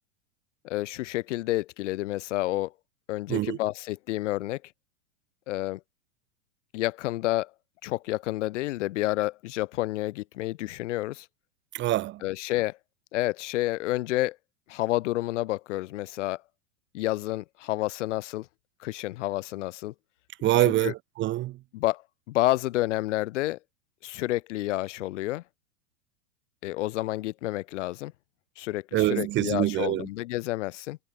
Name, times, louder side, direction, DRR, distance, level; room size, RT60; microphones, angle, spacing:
voice 1, 0.6-2.7 3.1-4.6 5.5-5.8 6.7-7.5 7.8-11.3 12.2-12.8 13.1-14.4 14.7-16.4 16.9-18.5 18.8-19.9 20.6-20.9 21.7-22.0 22.3-23.6 24.0-25.4 26.6-28.1 28.6-31.0, left 17 dB, 65° left, 3.3 m, -29 dB
voice 2, 11.7-12.2 20.4-21.6 28.9-30.1, right 15 dB, 30° right, 1.2 m, -25 dB
supercardioid pair, 135°, 39 cm